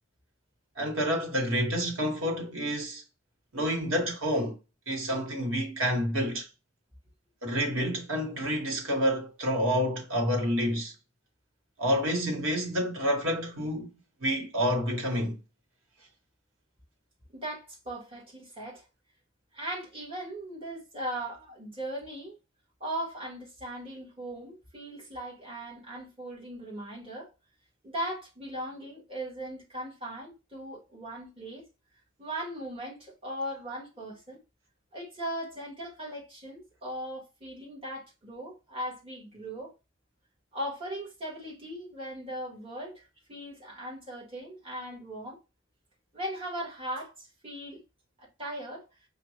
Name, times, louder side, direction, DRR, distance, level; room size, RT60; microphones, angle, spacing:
voice 1, 0.8-3.0 3.5-4.6 4.9-6.5 7.4-10.9 11.8-13.9 14.2-15.4, equal, 85° right, 1.4 m, -28 dB
voice 2, 17.3-18.8 19.5-22.3 22.8-27.3 27.8-31.6 32.2-34.4 34.9-39.7 40.5-45.4 46.1-47.8 48.2-48.8, right 1 dB, 30° right, 1.7 m, -38 dB
5.1 x 2.4 x 3.2 m
head